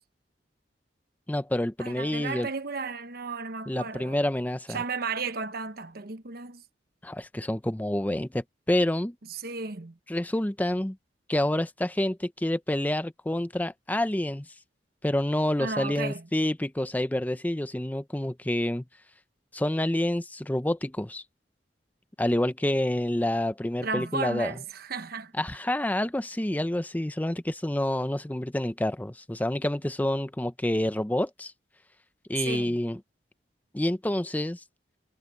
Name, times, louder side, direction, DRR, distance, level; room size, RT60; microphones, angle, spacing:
voice 1, 1.3-2.5 3.7-4.8 7.0-9.1 10.1-11.0 11.3-14.5 15.0-18.8 19.5-21.2 22.2-24.5 25.3-31.5 32.3-33.0 33.7-34.6, left 1 dB, 10° left, 0.6 m, -28 dB
voice 2, 1.8-4.2 4.7-6.6 9.3-10.0 15.6-16.3 23.8-25.3 32.4-32.8, right 4 dB, 55° right, 1.1 m, -34 dB
head